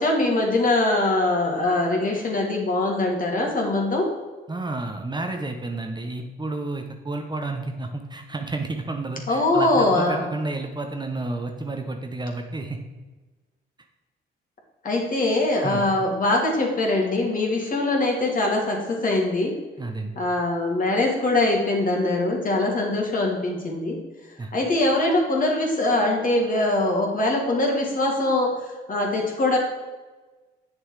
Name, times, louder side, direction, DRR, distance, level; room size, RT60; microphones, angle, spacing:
voice 1, 0.0-4.1 9.3-10.2 14.8-19.5 20.2-24.0 24.5-28.6 28.9-29.6, left 2 dB, 45° left, 0 dB, 2.7 m, -22 dB
voice 2, 4.5-12.8 15.6-15.9 19.8-20.2 24.4-24.5, right 2 dB, 20° right, 4 dB, 1.0 m, -31 dB
8.8 x 6.5 x 4.8 m, 1.2 s
cardioid pair, 90°, 20 cm